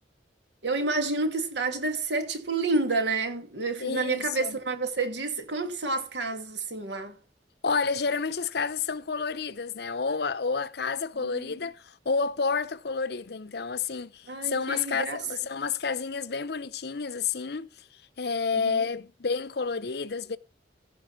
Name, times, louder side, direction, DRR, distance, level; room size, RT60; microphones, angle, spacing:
voice 1, 0.6-7.1 11.2-11.5 14.3-15.2 18.5-18.8, right 3 dB, 75° right, 2.6 m, -29 dB
voice 2, 3.8-4.6 7.6-17.7 18.2-20.4, left 5 dB, 60° left, 0.7 m, -30 dB
15.5 x 5.4 x 5.7 m
head